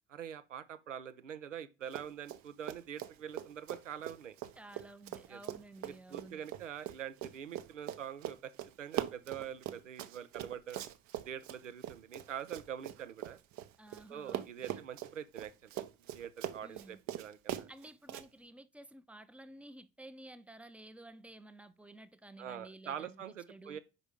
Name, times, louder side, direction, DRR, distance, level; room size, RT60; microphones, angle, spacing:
voice 1, 0.1-4.4 5.3-5.4 5.8-8.5 8.8-10.8 11.3-13.4 14.1-15.8 16.1-17.7 22.4-23.8, right 9 dB, 85° right, 0.5 m, -44 dB
Run, 1.9-2.4 2.7-14.0 14.3-18.3, right 12 dB, 50° right, 0.7 m, -42 dB
voice 2, 4.6-6.5 13.8-14.9 16.6-17.0 17.7-23.8, right 1 dB, 5° right, 0.6 m, -53 dB
5.3 x 5.0 x 4.8 m
figure-of-eight pair, 50°, 37 cm